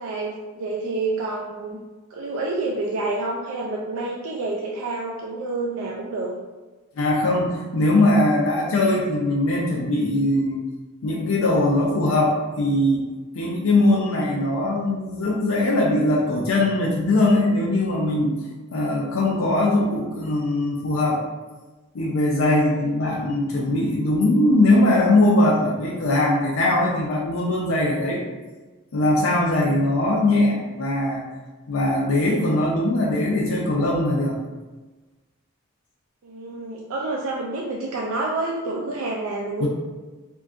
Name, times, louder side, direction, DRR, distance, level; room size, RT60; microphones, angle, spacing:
voice 1, 0.0-1.8 2.1-6.3 22.6-23.0 36.2-39.7, right 2 dB, 75° right, -2 dB, 0.4 m, -28 dB
voice 2, 7.0-10.6 11.0-13.0 13.3-18.3 18.7-21.2 21.9-28.2 28.9-31.2 31.7-34.4 39.6-39.7, left 1 dB, 75° left, -2 dB, 0.4 m, -21 dB
3.6 x 2.6 x 2.3 m, 1.2 s
head